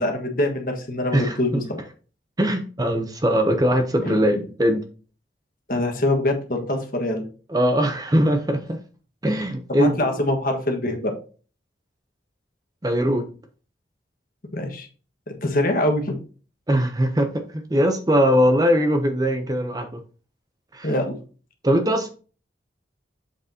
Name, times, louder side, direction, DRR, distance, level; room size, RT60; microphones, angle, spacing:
voice 1, 0.0-1.8 4.0-4.2 5.7-7.2 9.8-11.1 14.5-14.9 15.3-16.1 20.8-21.2, left 1 dB, 50° left, 1.5 m, -24 dB
voice 2, 1.1-1.6 2.4-4.8 7.5-8.8 9.2-10.1 12.8-13.3 16.7-20.0 20.7-20.9 21.6-22.1, equal, 20° right, 0.7 m, -21 dB
7.4 x 6.6 x 2.8 m
head